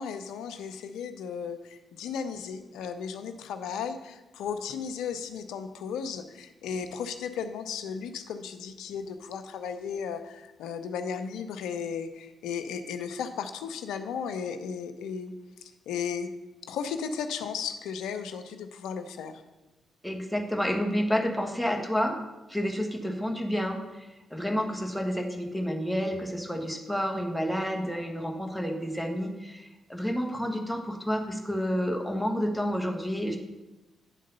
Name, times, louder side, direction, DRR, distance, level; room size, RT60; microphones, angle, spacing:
voice 1, 0.0-15.3 15.6-16.3 16.7-19.4, left 6 dB, 80° left, 9 dB, 0.6 m, -35 dB
voice 2, 20.0-22.2 22.5-33.4, equal, ahead, 1 dB, 1.5 m, -30 dB
10.0 x 3.7 x 5.4 m, 1.1 s
supercardioid pair, 50°, 0 cm